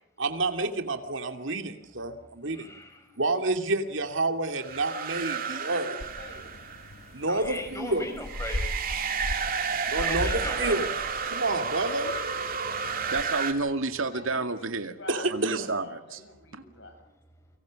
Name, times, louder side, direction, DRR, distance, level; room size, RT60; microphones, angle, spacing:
voice 1, 0.2-2.7 3.2-6.0 7.1-8.1 9.9-10.9 11.3-12.1 15.1-15.7, right 2 dB, 65° right, 6 dB, 2.6 m, -29 dB
voice 2, 2.5-3.2 6.9-7.0 7.3-8.6 9.6-10.8 13.0-13.1, left 1 dB, 15° left, 5 dB, 6.2 m, -38 dB
sound 1, 4.6-7.1 8.2-13.5, right 6 dB, 45° right, 2.8 m, -32 dB
voice 3, 5.3-6.6 14.1-14.7 15.0-15.3 15.8-17.0, left 2 dB, 60° left, 5 dB, 7.8 m, -47 dB
sound 2, 6.0-13.2, left 1 dB, 80° left, 1.3 m, -38 dB
voice 4, 13.1-15.0 15.3-16.2 16.5-16.6, right 3 dB, 80° right, 8 dB, 2.2 m, -30 dB
29.5 x 24.5 x 6.4 m, 0.74 s
head